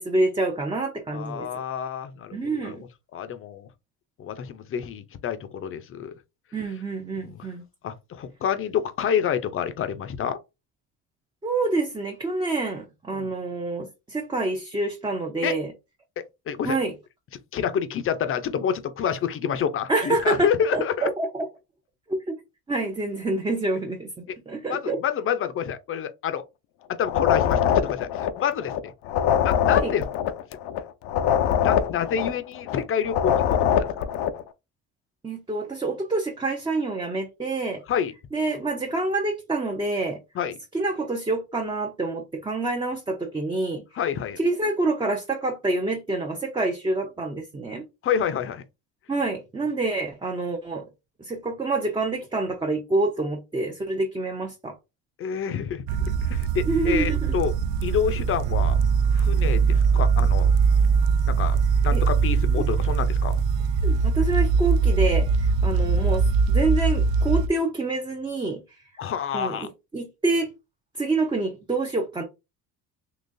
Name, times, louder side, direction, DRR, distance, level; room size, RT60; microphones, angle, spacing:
voice 1, 0.0-1.5 2.3-2.8 6.5-7.6 11.4-15.7 16.6-16.9 19.9-21.5 22.1-22.4 22.7-25.0 29.8-29.9 35.2-37.8 38.3-40.2 40.7-43.8 44.4-47.8 49.1-50.9 51.2-54.8 56.7-57.3 61.9-62.0 62.6-62.7 63.8-68.8 69.3-70.5 70.9-72.2, right 2 dB, 15° right, 0.5 m, -27 dB
voice 2, 1.1-2.8 3.1-3.7 4.2-6.1 7.1-7.5 7.8-10.4 13.1-13.3 15.4-15.5 16.2-16.8 17.5-21.1 23.3-23.4 24.7-26.4 26.9-28.9 29.4-30.0 31.5-33.9 37.9-38.1 40.4-40.6 44.0-44.4 48.0-48.6 55.2-55.8 56.2-57.5 57.8-58.8 59.1-60.5 61.3-61.6 61.8-63.4 69.0-69.7, left 8 dB, 35° left, 0.5 m, -28 dB
sound 1, 27.0-28.8 29.0-32.8 33.0-34.4, left 9 dB, 90° left, 0.6 m, -23 dB
sound 2, 55.9-67.5, right 5 dB, 75° right, 0.5 m, -21 dB
3.8 x 2.9 x 2.6 m
cardioid pair, 115°, 36 cm